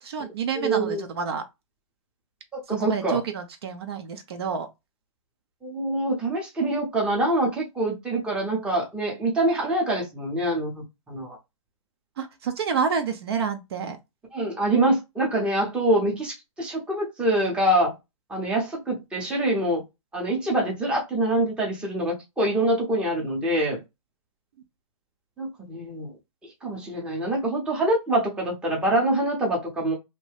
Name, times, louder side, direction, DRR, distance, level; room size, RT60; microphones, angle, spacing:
voice 1, 0.0-1.4 2.7-4.7 12.2-14.0, right 6 dB, 50° right, 0.6 m, -29 dB
voice 2, 0.6-1.0 2.5-3.2 5.6-11.4 14.3-17.9 18.3-19.8 20.1-23.8 25.4-26.1 26.6-29.9, right 1 dB, 5° right, 0.7 m, -25 dB
2.7 x 2.2 x 3.3 m
hypercardioid pair, 145°, 17 cm